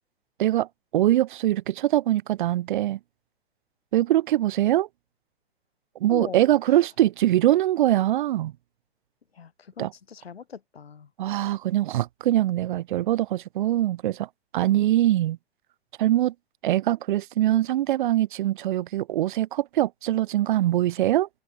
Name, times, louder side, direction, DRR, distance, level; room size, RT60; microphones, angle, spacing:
voice 1, 0.4-3.0 3.9-4.9 6.0-8.5 9.8-9.9 11.2-15.4 16.0-16.3 16.6-21.3, right 13 dB, 50° right, 2.6 m, -23 dB
voice 2, 6.1-6.9 9.3-11.1 14.6-14.9, left 7 dB, 70° left, 7.1 m, -41 dB
figure-of-eight pair, 110°, 32 cm